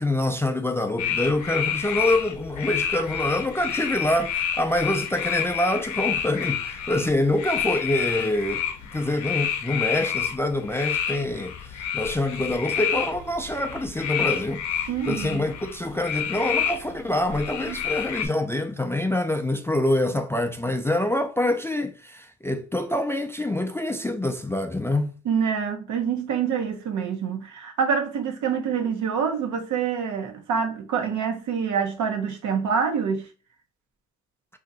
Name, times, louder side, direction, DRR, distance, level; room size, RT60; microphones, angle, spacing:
voice 1, 0.0-8.7 8.9-25.2, left 1 dB, 10° left, 0.3 m, -26 dB
sound 1, 1.0-18.3, left 8 dB, 70° left, 0.6 m, -29 dB
voice 2, 14.9-15.5 17.7-17.8 25.3-33.2, right 6 dB, 75° right, 0.8 m, -26 dB
2.7 x 2.5 x 3.8 m
cardioid pair, 90°, 30 cm